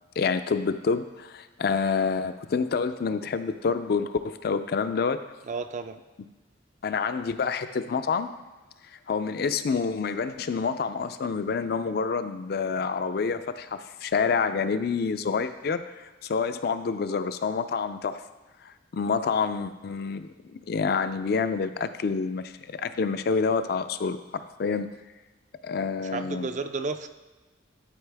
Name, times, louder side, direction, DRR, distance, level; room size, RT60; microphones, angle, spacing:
voice 1, 0.2-5.3 6.8-8.3 8.9-18.2 18.6-24.9 25.6-26.5, left 5 dB, 55° left, 11 dB, 0.4 m, -28 dB
voice 2, 5.5-6.0 26.1-27.1, right 4 dB, 40° right, 9 dB, 0.4 m, -32 dB
11.5 x 4.7 x 3.4 m, 1.2 s
head